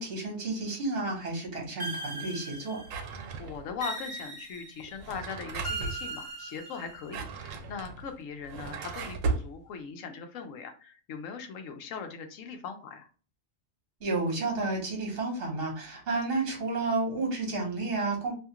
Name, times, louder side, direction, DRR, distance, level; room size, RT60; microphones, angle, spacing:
voice 1, 0.0-2.8 14.0-18.3, right 3 dB, 50° right, 0 dB, 1.2 m, -31 dB
sound 1, 1.8-3.1 3.8-4.9 5.6-7.2, right 2 dB, 20° right, 1.0 m, -39 dB
Drawer open or close, 2.8-3.8 4.9-6.0 6.9-9.5, right 4 dB, 90° right, 1.0 m, -35 dB
voice 2, 3.4-13.1, left 6 dB, 85° left, 6 dB, 1.0 m, -40 dB
2.8 x 2.3 x 2.8 m, 0.38 s
omnidirectional pair, 1.3 m